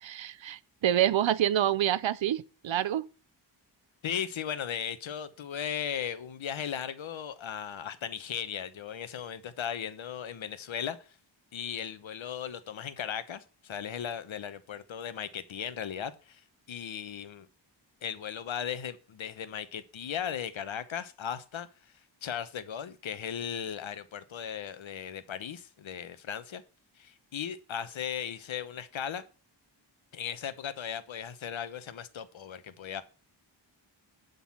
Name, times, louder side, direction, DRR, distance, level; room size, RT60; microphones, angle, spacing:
voice 1, 0.0-3.1, right 11 dB, 75° right, 0.7 m, -27 dB
voice 2, 4.0-11.0 11.5-16.4 16.7-17.5 18.0-21.7 22.2-26.6 27.0-29.2 30.1-33.0, left 8 dB, 80° left, 1.1 m, -37 dB
11.5 x 4.0 x 7.2 m
wide cardioid pair, 145°, 46 cm